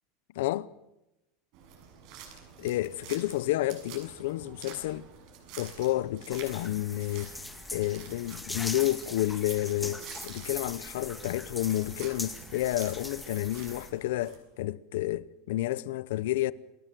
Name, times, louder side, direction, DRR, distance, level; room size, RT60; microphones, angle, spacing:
voice 1, 0.3-0.7 2.6-5.1 5.6-7.3 7.7-16.5, left 15 dB, 80° left, 0.9 m, -30 dB
sound 1, 1.5-14.4, right 7 dB, 50° right, 6.9 m, -49 dB
sound 2, 6.3-13.9, left 2 dB, 5° left, 2.1 m, -41 dB
28.5 x 19.5 x 7.8 m
supercardioid pair, 170°, 0 cm